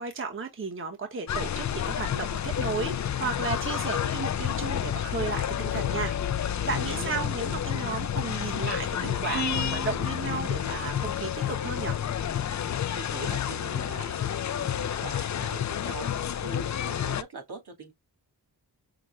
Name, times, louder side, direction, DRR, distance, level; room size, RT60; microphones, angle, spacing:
voice 1, 0.0-12.0, right 5 dB, 30° right, 1.0 m, -34 dB
sound 1, 1.3-17.2, left 9 dB, 45° left, 0.4 m, -30 dB
voice 2, 6.7-7.3 12.9-16.1 16.4-17.9, right 4 dB, 75° right, 2.4 m, -42 dB
sound 2, 9.3-13.1, right 4 dB, 50° right, 2.8 m, -40 dB
5.9 x 2.1 x 3.6 m
wide cardioid pair, 140°, 40 cm